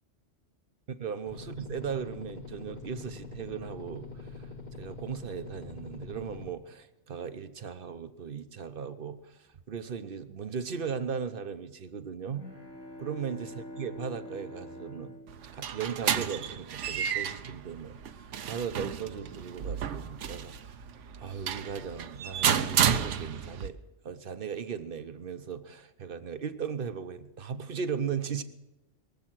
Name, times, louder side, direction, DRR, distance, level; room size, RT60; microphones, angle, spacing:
voice 1, 1.0-4.5 4.8-12.5 13.0-15.2 15.5-20.9 21.2-23.8 24.0-28.4, right 6 dB, 50° right, 11 dB, 0.9 m, -37 dB
sound 1, 1.3-6.5, left 3 dB, 40° left, 1.2 m, -44 dB
sound 2, 12.2-16.2, equal, 70° left, 5.5 m, -46 dB
sound 3, 15.3-23.7, right 8 dB, 75° right, 1.0 m, -31 dB
22.5 x 7.6 x 6.1 m, 0.99 s
omnidirectional pair, 1.3 m